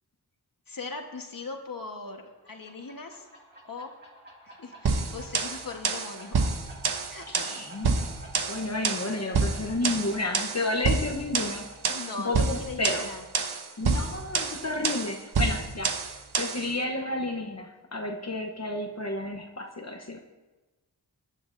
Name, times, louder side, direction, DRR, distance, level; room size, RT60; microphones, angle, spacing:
voice 1, 0.7-3.3 3.6-3.9 4.4-6.4 7.1-7.3 11.9-13.2, left 4 dB, 60° left, 4 dB, 1.4 m, -39 dB
sound 1, 2.2-15.6, right 1 dB, 25° right, 2.4 m, -51 dB
sound 2, 4.9-16.7, right 4 dB, 75° right, 1.0 m, -28 dB
voice 2, 7.3-8.1 8.5-11.7 12.2-13.1 13.8-15.9 16.4-20.2, left 2 dB, 40° left, 1 dB, 1.0 m, -31 dB
22.0 x 10.5 x 2.7 m, 1.2 s
wide cardioid pair, 90°, 39 cm